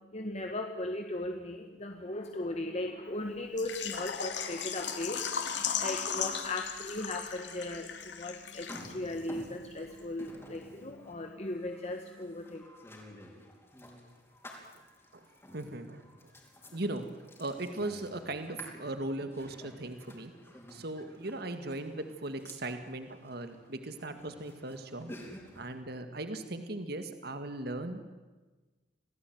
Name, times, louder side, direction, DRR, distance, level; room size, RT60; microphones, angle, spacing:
voice 1, 0.1-12.6, left 1 dB, 35° left, 4 dB, 1.6 m, -37 dB
Water / Liquid, 3.6-9.2 9.4-9.5 10.0-10.1, left 7 dB, 80° left, 2.7 m, -36 dB
sound 1, 8.6-25.8, equal, 15° left, 4.6 m, -52 dB
voice 2, 15.5-16.0 16.7-17.1 17.4-20.3 20.7-25.1 25.6-28.1, right 2 dB, 60° right, 8 dB, 2.0 m, -38 dB
28.0 x 18.0 x 9.5 m, 1.3 s
head